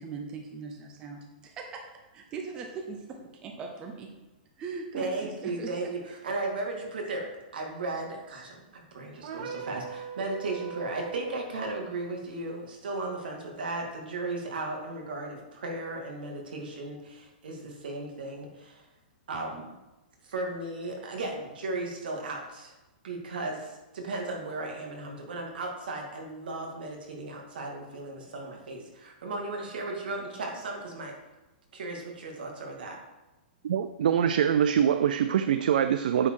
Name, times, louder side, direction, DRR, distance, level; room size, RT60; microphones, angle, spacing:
voice 1, 0.0-3.0 3.4-4.1 4.6-5.9, right 4 dB, 15° right, 2 dB, 0.6 m, -40 dB
voice 2, 4.9-18.8 19.3-19.7 20.2-22.7 23.0-31.1 31.7-33.0, right 2 dB, 75° right, 1 dB, 2.1 m, -36 dB
shofar blast medium length two tone, 9.2-11.4, right 6 dB, 45° right, 0.9 m, -40 dB
voice 3, 33.6-36.3, right 9 dB, 60° right, 10 dB, 0.4 m, -24 dB
8.6 x 4.5 x 4.7 m, 1.0 s
hypercardioid pair, 175°, 5 cm